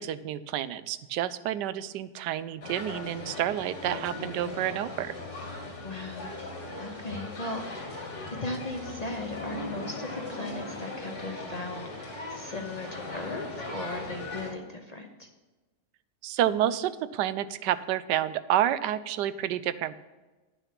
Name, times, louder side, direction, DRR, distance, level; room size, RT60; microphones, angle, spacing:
voice 1, 0.0-5.2 16.2-19.9, right 11 dB, 85° right, 15 dB, 1.2 m, -29 dB
sound 1, 2.6-14.5, left 2 dB, 65° left, 2.9 m, -39 dB
voice 2, 5.8-6.3 6.8-8.1 8.4-15.3, left 2 dB, 35° left, 4 dB, 0.7 m, -38 dB
10.5 x 6.8 x 5.9 m, 1.2 s
omnidirectional pair, 1.8 m